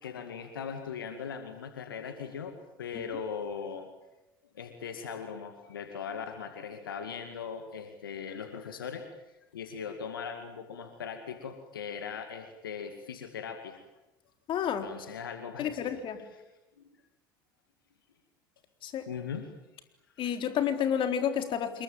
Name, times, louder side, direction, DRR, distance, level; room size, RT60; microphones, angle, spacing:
voice 1, 0.0-3.9 4.5-9.0 9.5-13.8 14.8-16.0 16.8-16.9 19.1-19.5 20.2-20.3, left 6 dB, 80° left, 7 dB, 2.3 m, -39 dB
voice 2, 14.5-14.9 15.6-16.2 18.8-19.1 20.2-21.8, left 8 dB, 45° left, 7 dB, 4.0 m, -30 dB
27.5 x 22.5 x 9.0 m, 0.99 s
hypercardioid pair, 75°, 11 cm